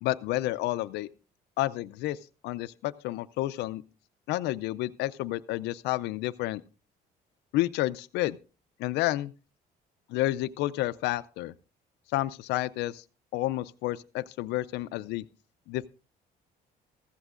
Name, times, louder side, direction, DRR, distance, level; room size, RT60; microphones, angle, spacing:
voice 1, 0.0-1.1 1.6-2.2 2.4-3.8 4.3-6.6 7.5-8.4 8.8-9.3 10.1-11.5 12.1-13.0 13.3-15.2 15.7-15.9, left 16 dB, 85° left, 0.5 m, -30 dB
15.0 x 14.0 x 2.4 m
cardioid pair, 110°, 17 cm